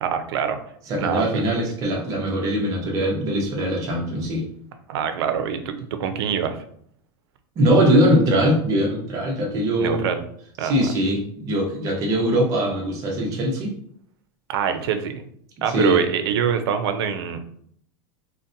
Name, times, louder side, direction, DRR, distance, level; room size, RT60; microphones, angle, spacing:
voice 1, 0.0-0.6 1.0-1.4 4.9-6.6 9.8-10.2 10.6-10.9 14.5-15.2 15.6-17.4, right 8 dB, 85° right, 8 dB, 0.5 m, -24 dB
voice 2, 0.9-4.4 7.6-10.0 10.6-13.7 15.7-16.0, equal, 25° right, -1 dB, 0.7 m, -21 dB
3.9 x 2.1 x 2.6 m, 0.64 s
supercardioid pair, 175°, 13 cm